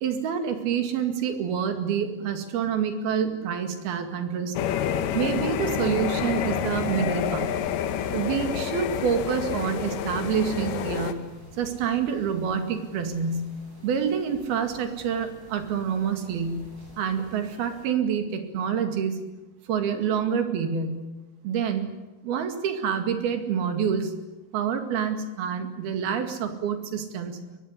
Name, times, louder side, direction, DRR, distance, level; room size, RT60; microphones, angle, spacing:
voice 1, 0.0-4.6 5.1-7.5 8.1-11.2 11.6-13.5 13.8-16.7 17.0-19.2 19.7-21.0 21.4-21.9 22.2-24.1 24.5-27.4, right 7 dB, 80° right, 7 dB, 4.1 m, -27 dB
sound 1, 4.6-11.1, left 9 dB, 90° left, 3.2 m, -28 dB
sound 2, 5.6-17.9, right 1 dB, 30° right, 8.1 m, -50 dB
23.5 x 20.0 x 9.8 m, 1.1 s
omnidirectional pair, 4.4 m